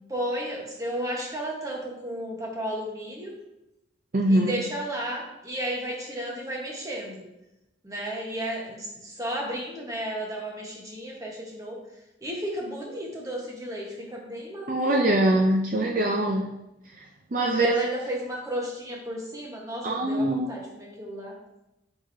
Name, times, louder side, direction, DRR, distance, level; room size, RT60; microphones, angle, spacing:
voice 1, 0.1-3.3 4.3-7.2 7.8-11.8 12.2-15.2 17.4-21.3, equal, 20° right, -2 dB, 1.2 m, -33 dB
voice 2, 4.1-4.5 14.7-16.5 17.3-17.9 19.8-20.6, right 1 dB, 45° right, 0 dB, 0.5 m, -23 dB
7.5 x 4.9 x 2.7 m, 0.91 s
head